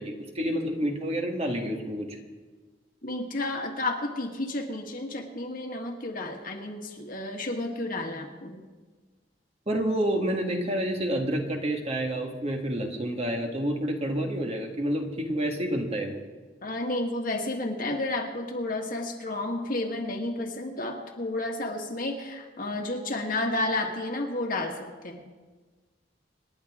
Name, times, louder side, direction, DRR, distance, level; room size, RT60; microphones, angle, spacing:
voice 1, 0.0-2.2 9.7-16.2, right 1 dB, 35° right, 2 dB, 1.7 m, -29 dB
voice 2, 3.0-8.6 16.6-25.3, left 2 dB, 50° left, 2 dB, 1.9 m, -31 dB
27.0 x 11.0 x 3.7 m, 1.4 s
head